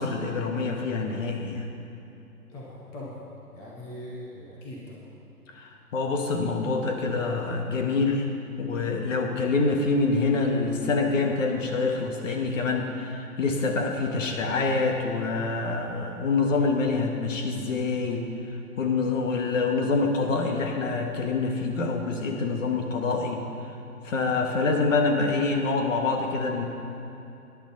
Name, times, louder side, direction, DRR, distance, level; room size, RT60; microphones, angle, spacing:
voice 1, 0.0-1.7 5.5-8.3 8.6-18.2 18.8-23.4 24.0-26.7, left 3 dB, 55° left, 3 dB, 1.8 m, -26 dB
voice 2, 2.5-3.2 3.5-5.1, left 1 dB, 5° left, -5 dB, 0.5 m, -41 dB
15.0 x 10.5 x 4.1 m, 2.8 s
hypercardioid pair, 140°, 46 cm